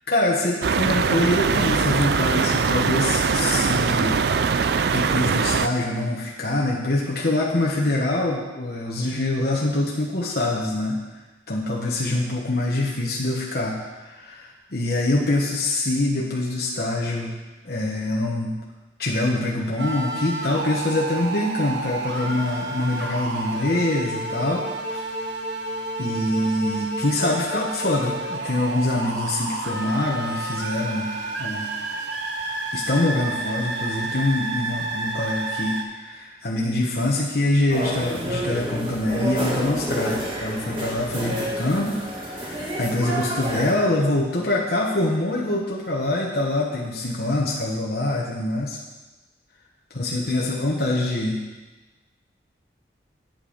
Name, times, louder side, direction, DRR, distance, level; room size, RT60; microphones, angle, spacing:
voice 1, 0.1-4.2 4.9-11.0 11.5-17.3 17.6-18.5 19.0-24.6 24.9-25.0 26.0-31.1 31.4-31.7 32.7-48.8 49.9-51.4, left 2 dB, 55° left, -3 dB, 1.1 m, -24 dB
sound 1, 0.6-5.7, right 5 dB, 60° right, 0.4 m, -22 dB
sound 2, 19.8-35.8, right 2 dB, 80° right, 1.0 m, -30 dB
sound 3, 37.7-43.7, right 1 dB, 30° right, 1.7 m, -29 dB
9.0 x 7.7 x 5.1 m, 1.2 s
head